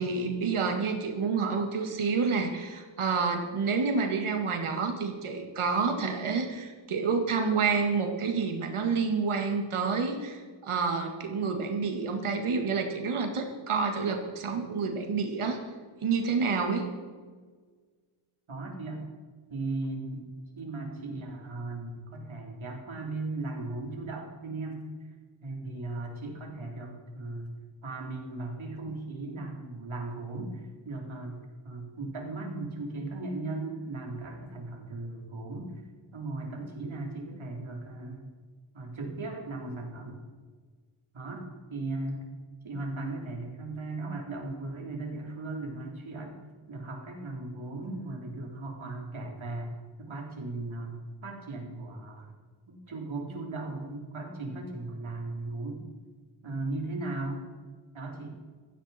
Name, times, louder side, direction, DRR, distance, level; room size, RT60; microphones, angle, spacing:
voice 1, 0.0-15.6 16.0-16.9, right 5 dB, 90° right, 4 dB, 2.0 m, -29 dB
voice 2, 18.5-19.0 19.5-20.3 20.6-24.8 25.4-27.5 27.8-35.7 36.1-38.3 38.7-40.2 41.1-41.4 41.7-42.2 42.6-46.4 46.7-49.7 50.0-51.0 51.2-52.3 52.7-55.8 56.4-57.4 57.9-58.4, right 2 dB, 75° right, 0 dB, 3.7 m, -37 dB
15.5 x 14.5 x 4.3 m, 1.5 s
wide cardioid pair, 100°, 48 cm